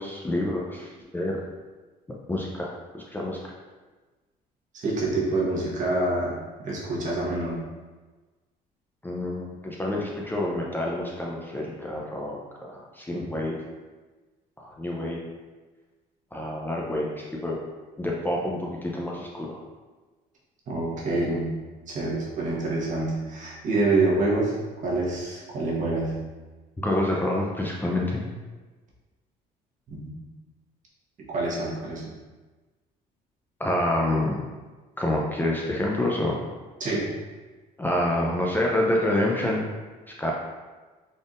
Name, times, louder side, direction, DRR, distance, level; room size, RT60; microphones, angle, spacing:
voice 1, 0.0-1.4 2.3-3.5 9.0-13.6 14.6-15.2 16.3-17.6 18.0-19.6 26.8-28.2 33.6-34.4 35.0-36.4 37.8-39.7 40.2-40.3, left 1 dB, 10° left, -3 dB, 0.5 m, -27 dB
voice 2, 4.7-7.6 13.1-13.2 20.7-21.5 21.9-24.6 24.8-26.2 29.9-30.1 31.3-32.1 36.8-37.1, right 2 dB, 50° right, -4 dB, 1.2 m, -26 dB
4.1 x 3.4 x 2.5 m, 1.3 s
cardioid pair, 110°, 17 cm